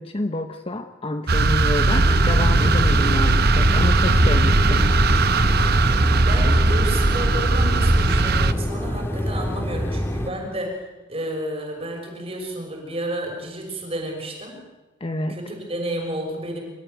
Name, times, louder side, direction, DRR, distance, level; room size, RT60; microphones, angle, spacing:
voice 1, 0.0-4.9 15.0-15.4, left 1 dB, 30° left, 7 dB, 0.9 m, -28 dB
sound 1, 1.3-8.5, right 2 dB, 55° right, 0.9 m, -18 dB
sound 2, 1.9-10.3, equal, 15° left, 1.9 m, -26 dB
voice 2, 6.1-14.6 15.3-16.6, right 1 dB, 30° right, 1 dB, 6.2 m, -31 dB
26.5 x 14.0 x 9.4 m, 1.2 s
head